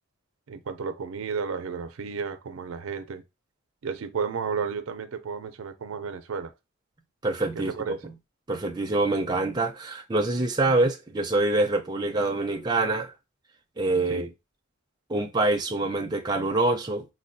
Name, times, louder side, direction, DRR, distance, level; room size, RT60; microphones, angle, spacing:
voice 1, 0.5-3.2 3.8-6.5 7.6-8.0 14.1-14.3, right 5 dB, 80° right, 0.4 m, -32 dB
voice 2, 7.2-8.1 8.5-13.1 13.8-14.3 15.1-17.1, right 2 dB, 20° right, 0.4 m, -25 dB
4.2 x 2.2 x 2.6 m
head